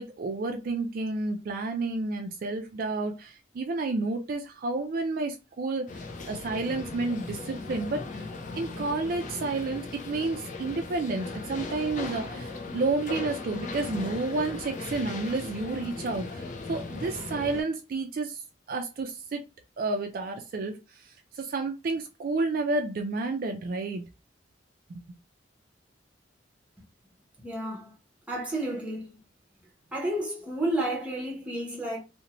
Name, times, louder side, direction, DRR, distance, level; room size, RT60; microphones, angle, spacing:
voice 1, 0.0-5.9 6.2-8.3 8.6-18.4 18.7-19.4 19.8-24.0 24.9-25.0, right 3 dB, 50° right, 0.3 m, -31 dB
sound 1, 5.9-17.6, left 3 dB, 45° left, 0.4 m, -38 dB
voice 2, 27.4-27.9 28.3-29.1 29.9-32.0, right 1 dB, 5° right, 0.8 m, -31 dB
2.6 x 2.1 x 2.8 m
head